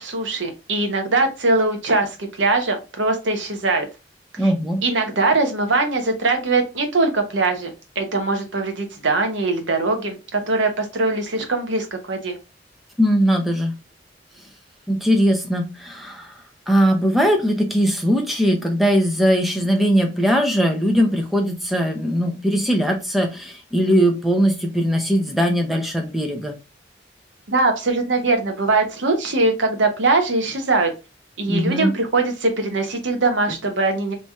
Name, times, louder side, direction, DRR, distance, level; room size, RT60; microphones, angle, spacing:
voice 1, 0.0-3.9 4.8-12.4 27.5-30.9 31.4-34.1, right 3 dB, 80° right, 5 dB, 1.0 m, -21 dB
voice 2, 4.4-4.8 13.0-13.7 14.9-16.4 16.7-26.5 31.5-31.9, equal, ahead, 3 dB, 0.7 m, -20 dB
3.3 x 2.9 x 3.4 m, 0.28 s
head